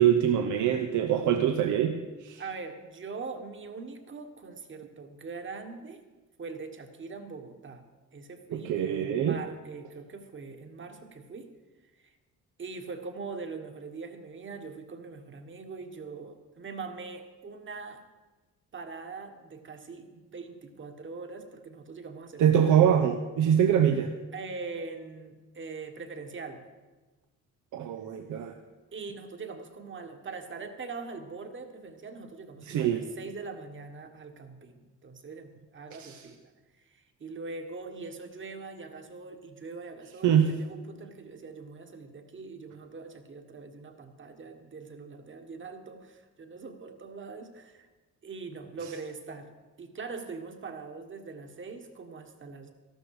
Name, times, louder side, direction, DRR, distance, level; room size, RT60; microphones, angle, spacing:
voice 1, 0.0-2.0 2.2-2.4 8.5-9.4 22.4-24.1 27.7-28.6 32.7-33.0 36.0-36.2 40.2-40.5, right 9 dB, 75° right, 5 dB, 0.8 m, -24 dB
voice 2, 2.4-6.0 6.4-7.9 8.1-11.5 11.9-12.1 12.6-18.0 18.7-22.8 24.3-26.6 28.9-36.5 36.8-47.9 48.2-49.5 49.8-52.7, right 4 dB, 40° right, 6 dB, 1.6 m, -42 dB
13.5 x 12.5 x 4.9 m, 1.3 s
cardioid pair, 90°, 30 cm